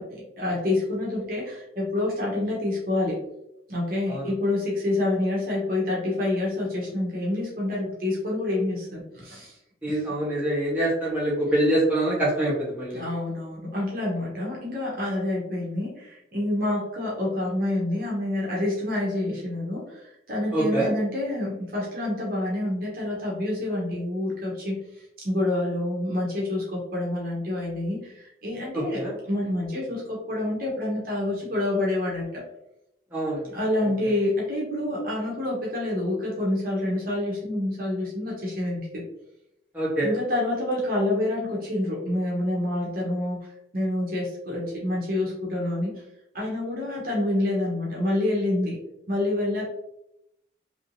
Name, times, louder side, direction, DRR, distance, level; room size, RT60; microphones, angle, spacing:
voice 1, 0.0-3.2 3.7-9.6 9.9-10.0 12.9-32.4 33.4-39.0 40.0-46.0 46.3-48.8 49.1-49.7, left 1 dB, 50° right, -4 dB, 1.0 m, -27 dB
voice 2, 9.8-13.0 20.5-20.9 28.9-29.1 33.1-33.4 39.7-40.1, right 1 dB, 10° right, -7 dB, 1.1 m, -25 dB
3.5 x 2.8 x 2.6 m, 0.82 s
head